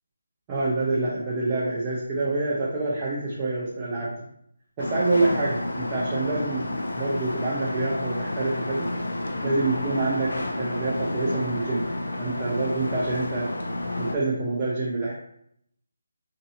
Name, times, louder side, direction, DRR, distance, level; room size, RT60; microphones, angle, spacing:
voice 1, 0.5-4.2 4.8-8.9 9.4-11.8 12.2-13.5 14.0-15.2, right 2 dB, 15° right, -6 dB, 0.4 m, -27 dB
sound 1, 4.8-14.2, left 1 dB, 80° left, 0.5 m, -30 dB
3.7 x 2.7 x 2.8 m, 0.73 s
hypercardioid pair, 175°, 0 cm